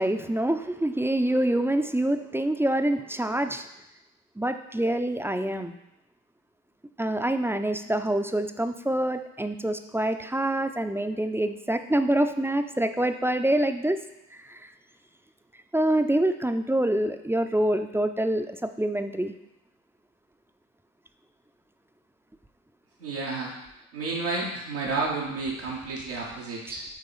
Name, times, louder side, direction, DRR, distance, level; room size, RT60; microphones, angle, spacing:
voice 1, 0.0-3.7 4.4-5.7 7.0-14.0 14.5-14.6 15.7-19.3 26.7-26.8, right 1 dB, 5° right, 7 dB, 0.4 m, -26 dB
voice 2, 23.0-23.5 23.9-26.8, right 3 dB, 85° right, -6 dB, 1.0 m, -31 dB
8.3 x 3.0 x 3.9 m, 0.88 s
hypercardioid pair, 45°, 41 cm